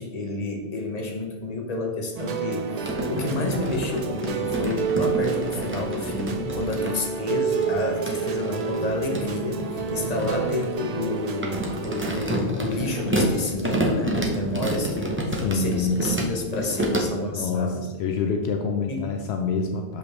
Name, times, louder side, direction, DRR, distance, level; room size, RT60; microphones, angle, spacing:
voice 1, 0.0-17.9 18.9-19.1, left 2 dB, 40° left, 1 dB, 1.0 m, -30 dB
sound 1, 2.2-12.2, right 6 dB, 50° right, 0.5 m, -29 dB
sound 2, 2.8-6.9 7.6-17.0, equal, 15° right, 0.7 m, -29 dB
voice 2, 15.3-16.1 17.3-20.0, left 4 dB, 75° left, 4 dB, 0.8 m, -27 dB
6.7 x 5.4 x 3.2 m, 1.3 s
omnidirectional pair, 1.1 m